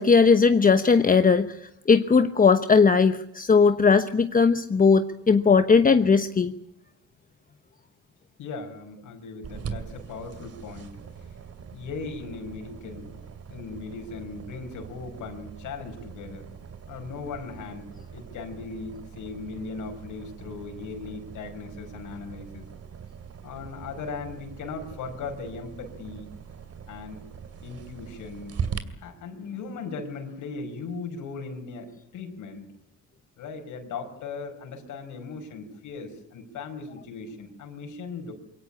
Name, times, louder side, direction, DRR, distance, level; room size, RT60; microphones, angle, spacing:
voice 1, 0.0-1.5 1.9-6.5, left 5 dB, 30° left, 9 dB, 1.0 m, -18 dB
voice 2, 8.4-10.9 11.7-13.2 13.5-16.4 16.9-17.9 18.1-22.6 23.4-26.3 26.9-27.2 27.6-28.5 29.0-32.7 33.4-38.3, left 4 dB, 85° left, 4 dB, 5.1 m, -38 dB
sound 1, 9.4-28.8, right 7 dB, 55° right, 2.6 m, -41 dB
23.5 x 17.5 x 9.9 m, 0.78 s
cardioid pair, 90°, 30 cm